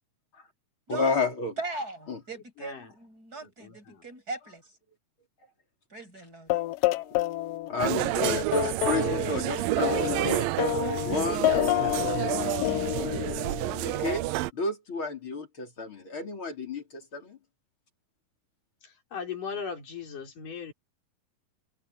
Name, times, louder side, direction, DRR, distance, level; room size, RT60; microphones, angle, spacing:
voice 1, 0.9-1.5 2.1-2.2 7.7-10.5 11.0-12.4 13.8-14.2 14.5-17.4, left 3 dB, 35° left, 4.7 m, -31 dB
voice 2, 1.6-4.7 5.9-6.5, right 3 dB, 25° right, 8.4 m, -39 dB
voice 3, 2.6-2.9 3.4-4.0 10.0-10.5 13.1-13.8 18.8-20.7, left 6 dB, 70° left, 7.4 m, -40 dB
sound 1, 6.5-7.8 8.2-14.2, left 16 dB, 85° left, 2.4 m, -29 dB
sound 2, 7.8-14.5, right 17 dB, 85° right, 2.4 m, -29 dB
omnidirectional pair, 3.9 m